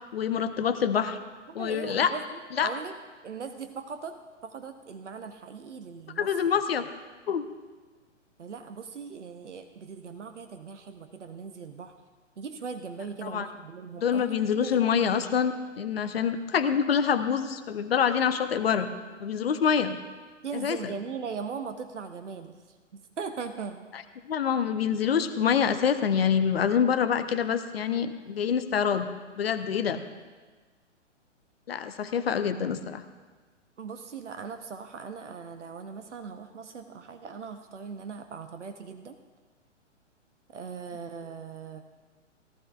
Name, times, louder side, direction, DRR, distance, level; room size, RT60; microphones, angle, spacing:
voice 1, 0.1-1.2 1.5-2.1 2.6-2.7 6.2-6.8 7.3-7.5 13.2-13.5 14.0-18.9 19.2-20.0 20.5-20.9 23.9-24.0 24.3-29.1 29.4-30.0 31.7-33.0, left 7 dB, 55° left, 10 dB, 0.8 m, -26 dB
voice 2, 1.6-2.9 3.2-4.2 4.4-6.3 8.4-11.9 12.4-15.0 20.4-22.5 22.9-23.9 33.8-39.2 40.5-41.9, right 5 dB, 70° right, 8 dB, 0.8 m, -39 dB
18.0 x 12.5 x 2.5 m, 1.4 s
figure-of-eight pair, 115°, 37 cm